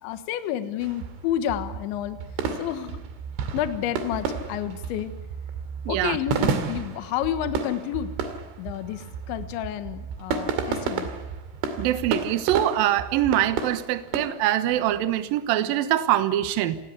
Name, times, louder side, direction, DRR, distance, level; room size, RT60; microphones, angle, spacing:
voice 1, 0.0-2.2 2.6-3.0 3.5-5.1 5.9-6.4 6.7-8.1 8.6-11.1, left 11 dB, 70° left, 10 dB, 3.4 m, -30 dB
sound 1, 0.8-14.2, right 5 dB, 70° right, 4.6 m, -32 dB
voice 2, 5.9-6.2 11.8-16.8, right 12 dB, 90° right, 11 dB, 2.0 m, -24 dB
27.5 x 19.5 x 8.5 m, 0.97 s
omnidirectional pair, 5.9 m